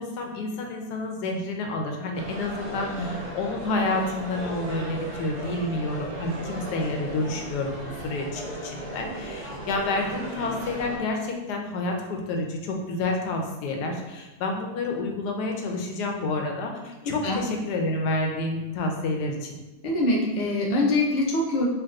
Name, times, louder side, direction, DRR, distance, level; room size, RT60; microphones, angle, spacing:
voice 1, 0.0-19.6, left 2 dB, 85° left, 2 dB, 1.2 m, -29 dB
sound 1, 2.1-11.0, right 1 dB, 35° right, 0.6 m, -36 dB
voice 2, 19.8-21.7, left 2 dB, 60° left, -2 dB, 0.4 m, -24 dB
4.5 x 2.9 x 2.5 m, 1.1 s
omnidirectional pair, 1.7 m